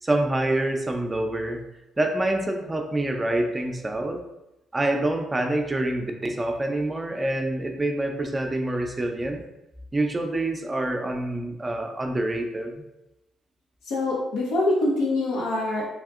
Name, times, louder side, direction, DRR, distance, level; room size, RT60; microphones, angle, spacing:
voice 1, 0.0-1.6 2.0-4.2 4.7-9.4 9.9-12.8, right 1 dB, 20° right, 3 dB, 0.4 m, -26 dB
voice 2, 13.8-15.9, left 2 dB, 85° left, -4 dB, 0.7 m, -24 dB
3.4 x 2.6 x 2.4 m, 0.92 s
cardioid pair, 90°, 0 cm